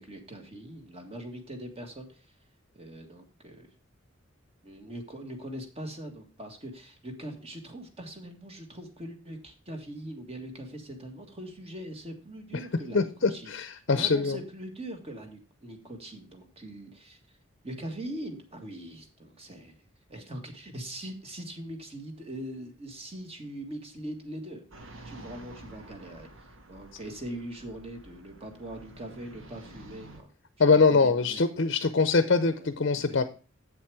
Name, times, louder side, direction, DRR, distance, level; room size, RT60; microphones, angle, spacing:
voice 1, 0.0-2.3 2.7-3.7 4.6-13.5 13.9-17.2 17.6-19.8 20.1-24.6 25.0-26.3 26.7-30.3 30.9-31.4 32.5-33.2, right 1 dB, 30° right, 5 dB, 1.8 m, -41 dB
voice 2, 12.9-14.4 30.6-33.2, left 4 dB, 60° left, 11 dB, 0.7 m, -23 dB
sound 1, 24.7-30.2, right 1 dB, 75° right, 1.4 m, -49 dB
8.2 x 7.3 x 4.8 m, 0.35 s
head